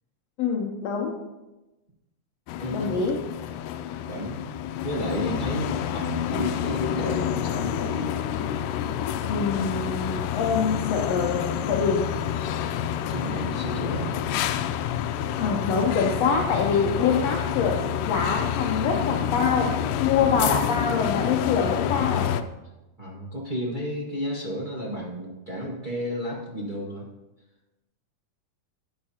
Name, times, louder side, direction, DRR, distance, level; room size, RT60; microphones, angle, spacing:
voice 1, 0.4-1.1 2.7-3.2 9.3-12.0 15.4-19.7 20.0-22.3, left 5 dB, 65° left, 0 dB, 1.8 m, -25 dB
sound 1, 2.5-22.4, left 9 dB, 85° left, 2.1 m, -28 dB
voice 2, 2.6-3.1 4.1-4.5 4.8-8.1 13.1-14.1 23.0-27.0, equal, 25° right, -5 dB, 1.0 m, -32 dB
14.0 x 9.6 x 2.8 m, 1.0 s
omnidirectional pair, 3.7 m